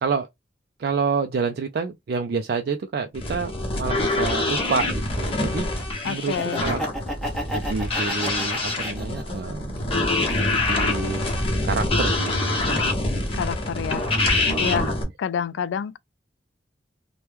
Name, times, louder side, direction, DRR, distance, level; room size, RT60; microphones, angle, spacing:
voice 1, 0.8-5.7 6.0-6.8 7.5-11.3 11.6-12.8 14.5-15.0, right 5 dB, 55° right, 0.3 m, -28 dB
sound 1, 3.1-15.0, left 2 dB, 30° left, 1.0 m, -25 dB
voice 2, 6.0-6.6 13.3-14.1 14.6-14.9 15.2-16.0, left 7 dB, 85° left, 0.3 m, -28 dB
Laughter, 6.2-9.4 9.9-11.0, equal, ahead, 0.8 m, -33 dB
3.0 x 2.2 x 3.3 m
head